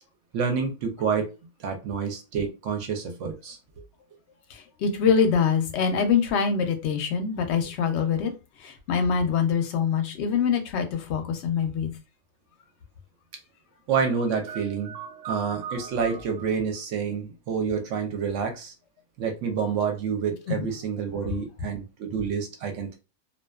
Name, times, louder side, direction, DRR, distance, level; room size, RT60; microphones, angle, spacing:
voice 1, 0.3-1.3 1.6-3.6 13.9-18.7 19.2-23.0, right 6 dB, 70° right, 0.8 m, -28 dB
voice 2, 4.5-8.3 8.6-11.9 20.5-20.7 21.2-21.3, left 6 dB, 65° left, 0.7 m, -24 dB
2.5 x 2.2 x 2.3 m
omnidirectional pair, 1.5 m